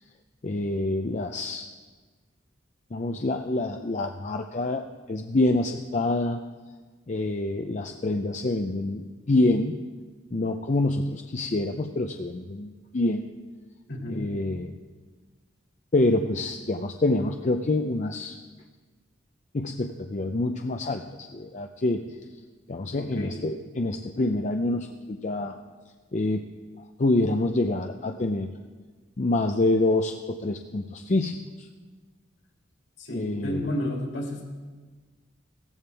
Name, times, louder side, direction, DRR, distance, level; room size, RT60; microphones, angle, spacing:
voice 1, 0.4-1.7 2.9-6.4 7.1-9.8 10.3-13.3 14.1-14.7 15.9-18.4 19.5-22.0 22.7-25.5 26.1-26.5 27.0-28.5 29.2-31.7 33.1-33.7, left 2 dB, 40° left, 5 dB, 0.5 m, -26 dB
voice 2, 13.9-14.4 22.9-23.4 33.0-34.5, left 1 dB, 65° left, 0 dB, 2.6 m, -32 dB
16.5 x 14.5 x 3.4 m, 1.4 s
head